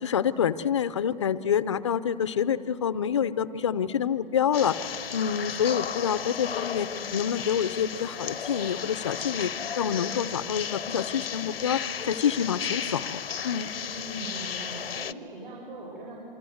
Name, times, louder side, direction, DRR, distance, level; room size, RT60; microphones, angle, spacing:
voice 1, 0.0-13.7, left 8 dB, 30° left, 15 dB, 0.6 m, -27 dB
sound 1, 4.5-15.1, left 7 dB, 80° left, 0.8 m, -34 dB
voice 2, 13.8-16.1, right 1 dB, 60° right, -3 dB, 7.6 m, -40 dB
27.0 x 24.5 x 7.9 m, 2.7 s
hypercardioid pair, 160°, 29 cm